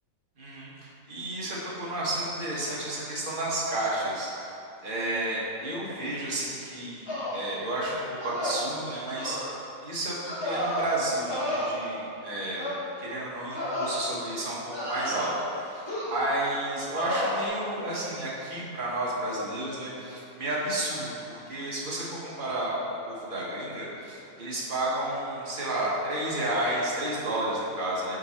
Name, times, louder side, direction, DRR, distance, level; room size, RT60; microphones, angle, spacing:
voice 1, 0.4-4.5 4.8-28.2, right 1 dB, 40° right, -6 dB, 1.3 m, -32 dB
sound 1, 7.1-7.5 8.2-8.7 9.2-9.4 10.2-10.9 11.3-11.6 12.5-12.8 13.5-13.9 14.7-15.4 15.9-16.3 16.9-17.5, left 1 dB, 20° left, 1.2 m, -31 dB
5.2 x 4.6 x 4.2 m, 2.7 s
omnidirectional pair, 1.5 m